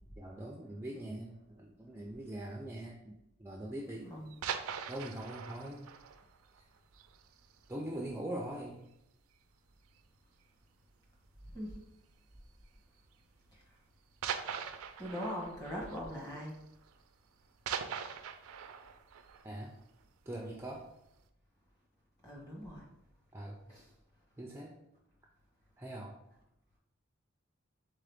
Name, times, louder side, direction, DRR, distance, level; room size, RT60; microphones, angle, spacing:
voice 1, 0.2-4.1 4.7-5.9 6.6-6.7 7.7-8.9 19.4-19.7 20.3-20.9 23.3-23.7 24.4-24.8 25.8-26.2, right 1 dB, 10° right, -1 dB, 0.3 m, -42 dB
sound 1, 4.2-7.7 8.0-8.1 8.6-8.8 9.1-9.2 10.0-10.4 11.6-11.9 12.8-12.9 14.2-17.0 17.3-20.4 20.9-21.0, right 7 dB, 85° right, 0.4 m, -42 dB
voice 2, 15.0-16.5 22.2-22.9 23.7-23.8, equal, 15° left, -3 dB, 1.2 m, -41 dB
3.8 x 3.8 x 3.4 m, 0.84 s
head